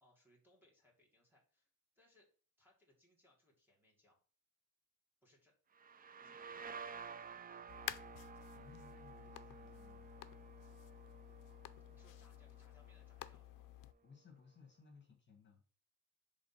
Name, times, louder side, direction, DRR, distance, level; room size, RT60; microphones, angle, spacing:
voice 1, 0.0-2.3 2.6-4.2 5.2-5.5 6.2-6.7 11.9-13.7, left 1 dB, 5° right, -2 dB, 1.9 m, -72 dB
sound 1, 5.7-13.3, right 6 dB, 25° right, 0.4 m, -53 dB
sound 2, 7.7-13.9, left 14 dB, 70° left, 0.5 m, -52 dB
voice 2, 8.5-10.1 14.0-15.6, left 5 dB, 35° left, 1 dB, 1.7 m, -62 dB
5.1 x 3.6 x 5.6 m, 0.41 s
cardioid pair, 125°, 33 cm